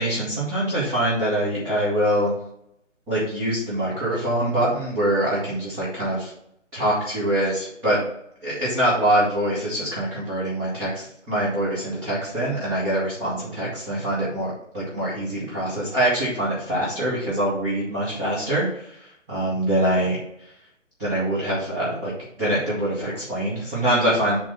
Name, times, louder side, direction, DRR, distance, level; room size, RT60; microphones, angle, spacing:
voice 1, 0.0-2.3 3.1-6.3 6.7-8.0 8.4-20.2 21.0-22.1 22.4-24.4, right 1 dB, 10° right, -11 dB, 1.1 m, -24 dB
6.0 x 3.8 x 5.7 m, 0.74 s
figure-of-eight pair, 145°, 38 cm